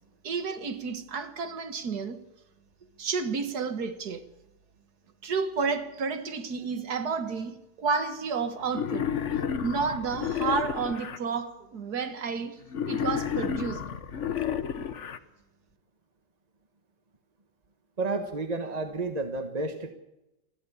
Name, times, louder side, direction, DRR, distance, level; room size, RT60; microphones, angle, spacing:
voice 1, 0.2-2.2 3.0-4.3 5.2-9.1 9.6-13.9, right 5 dB, 50° right, 1.9 m, -31 dB
Wild animals, 8.7-11.2 12.7-15.2, left 8 dB, 45° left, 1.0 m, -31 dB
voice 2, 18.0-19.9, right 3 dB, 25° right, 1.0 m, -31 dB
28.5 x 11.5 x 8.6 m
omnidirectional pair, 2.3 m